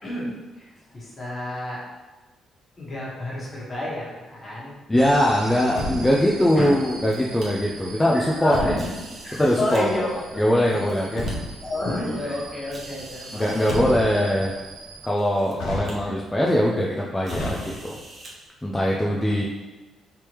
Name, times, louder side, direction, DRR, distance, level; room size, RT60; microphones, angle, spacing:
voice 1, 0.0-1.8 2.8-4.7 6.5-6.8 8.1-8.8 9.2-10.8 11.6-14.0 16.0-16.1 18.8-19.4, left 1 dB, 30° left, -7 dB, 1.4 m, -30 dB
voice 2, 4.9-8.8 9.3-10.1 10.4-11.3 13.3-14.6 15.0-18.0 18.6-19.4, equal, 15° left, -3 dB, 0.4 m, -22 dB
sound 1, 5.0-15.1, right 3 dB, 75° right, 0.4 m, -42 dB
Truck, 5.5-6.4 8.3-9.1 10.8-11.7 13.3-14.4 15.6-16.4 17.3-18.2, left 1 dB, 80° left, 0.7 m, -32 dB
sound 2, 6.8-7.5 8.7-9.8 10.5-11.3 12.0-12.1 12.7-13.8 14.7-14.8 15.2-15.5 15.8-16.0 17.2-18.3, right 1 dB, 45° right, 0.9 m, -45 dB
3.3 x 3.0 x 3.1 m, 1.2 s
cardioid pair, 90°, 0 cm